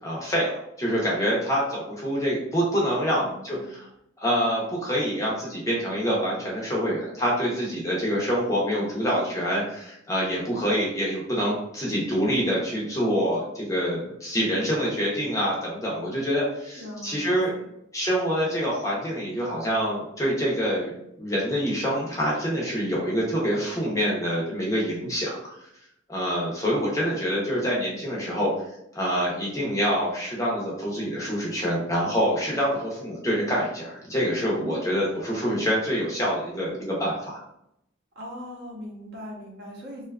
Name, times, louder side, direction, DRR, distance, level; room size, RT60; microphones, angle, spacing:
voice 1, 0.0-3.9 4.2-17.5 17.9-20.9 21.2-25.5 26.1-28.5 28.9-37.4, equal, 15° left, -5 dB, 0.6 m, -26 dB
voice 2, 3.0-3.7 16.8-17.7 34.6-34.8 38.2-40.0, equal, 55° right, -3 dB, 0.7 m, -40 dB
2.5 x 2.3 x 2.3 m, 0.77 s
head